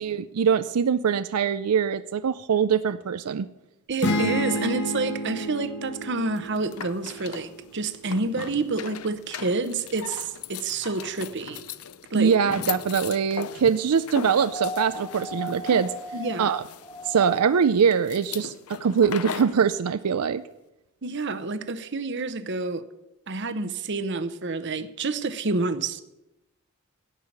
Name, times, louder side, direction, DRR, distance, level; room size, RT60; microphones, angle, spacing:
voice 1, 0.0-3.5 12.1-15.9 16.4-16.6 17.0-18.5 18.8-20.4, right 7 dB, 85° right, 0.5 m, -23 dB
voice 2, 3.9-11.6 12.1-12.3 16.1-16.5 21.0-22.8 23.3-26.0, right 3 dB, 50° right, 0.9 m, -28 dB
sound 1, 4.0-7.7, left 1 dB, 50° left, 1.7 m, -30 dB
sound 2, 6.4-19.6, left 8 dB, 75° left, 0.6 m, -39 dB
sound 3, 14.4-17.6 19.1-19.2, left 1 dB, 15° left, 1.6 m, -37 dB
17.0 x 5.7 x 8.7 m
head